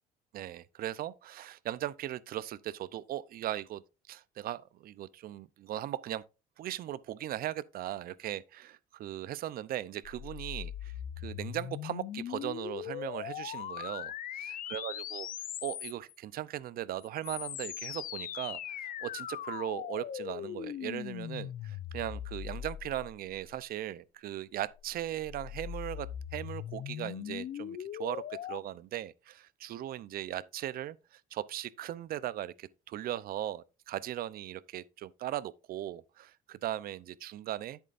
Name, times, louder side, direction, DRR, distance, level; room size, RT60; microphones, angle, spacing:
voice 1, 0.3-6.2 6.6-14.1 14.7-15.3 15.6-28.2 28.5-37.8, right 13 dB, 60° right, 0.6 m, -38 dB
sound 1, 10.0-16.2 17.0-23.6 24.7-28.6, left 10 dB, 55° left, 0.7 m, -40 dB
10.0 x 8.2 x 2.5 m
cardioid pair, 110°, 17 cm